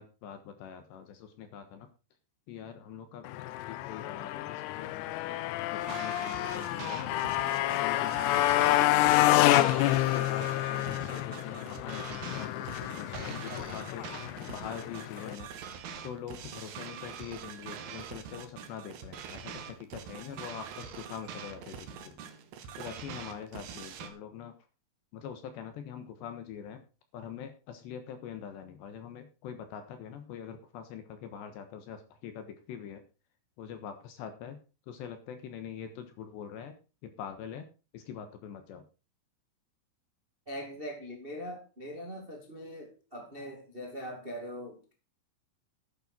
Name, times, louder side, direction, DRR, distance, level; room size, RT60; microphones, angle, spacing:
voice 1, 0.0-1.9 2.5-3.2 3.6-5.4 5.7-7.2 7.8-9.2 9.7-14.1 14.5-15.5 16.0-22.2 22.8-24.5 25.1-26.8 27.1-33.0 33.6-34.6 34.9-36.8 37.0-37.7 37.9-38.8, left 8 dB, 70° left, 3.1 m, -43 dB
Motorcycle, 3.3-15.4, left 15 dB, 85° left, 3.5 m, -28 dB
sound 1, 5.8-24.1, right 7 dB, 70° right, 2.4 m, -44 dB
voice 2, 40.4-44.9, equal, 40° right, 0.7 m, -41 dB
13.0 x 9.2 x 4.4 m
omnidirectional pair, 5.9 m